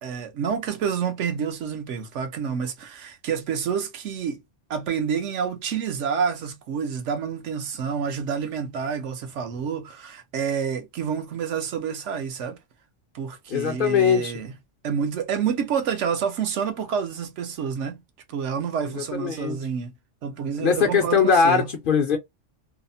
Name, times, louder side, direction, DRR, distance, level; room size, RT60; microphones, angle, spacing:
voice 1, 0.0-4.4 4.7-12.6 13.1-14.5 14.8-18.0 18.3-19.9 20.2-21.7, right 7 dB, 75° right, 1.0 m, -28 dB
voice 2, 13.5-14.3 19.2-19.6 20.6-22.2, left 6 dB, 60° left, 0.6 m, -20 dB
2.9 x 2.0 x 2.5 m
omnidirectional pair, 1.2 m